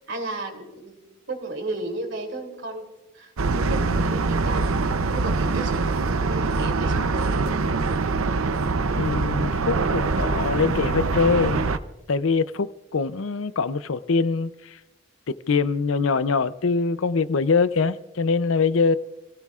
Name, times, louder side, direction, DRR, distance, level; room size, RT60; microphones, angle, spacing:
voice 1, 0.0-2.9 3.1-4.7 5.1-7.6, right 2 dB, 60° right, 3.0 m, -34 dB
sound 1, 3.4-11.8, right 3 dB, 80° right, 0.7 m, -24 dB
voice 2, 9.0-11.7 12.1-14.8 15.5-19.0, left 4 dB, 70° left, 0.6 m, -23 dB
30.0 x 17.0 x 2.4 m
head